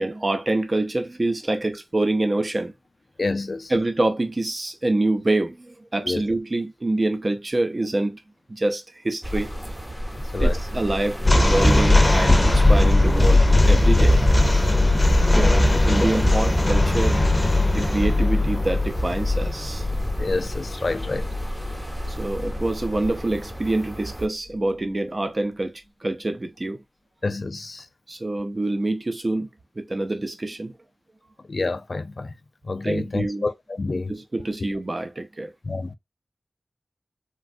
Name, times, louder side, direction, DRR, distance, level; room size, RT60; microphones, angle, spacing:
voice 1, 0.0-2.7 3.7-8.2 8.5-9.5 10.4-14.2 14.6-14.7 15.2-17.2 17.7-19.9 22.1-25.7 26.0-26.8 28.1-29.5 29.8-30.7 32.8-33.5 33.9-35.5, right 2 dB, 40° right, 0.6 m, -26 dB
voice 2, 3.2-3.7 6.1-6.2 10.3-10.6 16.0-16.1 20.2-21.3 27.2-27.8 31.5-32.3 32.6-34.1 35.6-35.9, left 3 dB, 60° left, 0.3 m, -28 dB
sound 1, 9.2-24.3, equal, 10° right, 0.9 m, -31 dB
sound 2, 11.2-22.5, left 2 dB, 25° left, 0.7 m, -19 dB
3.3 x 2.3 x 2.5 m
wide cardioid pair, 60°, 0 cm